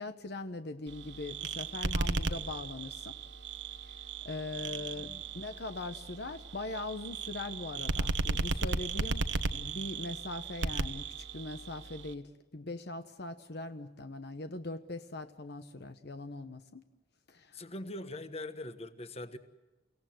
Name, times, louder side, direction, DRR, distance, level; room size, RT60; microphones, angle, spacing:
voice 1, 0.0-3.1 3.8-4.0 4.2-11.0 11.3-16.8 17.3-17.6, left 2 dB, 60° left, 1.1 m, -41 dB
sound 1, 0.9-12.1, right 3 dB, 70° right, 1.3 m, -36 dB
voice 2, 4.7-5.2 17.5-19.4, left 1 dB, 35° left, 1.4 m, -42 dB
30.0 x 17.5 x 7.8 m
head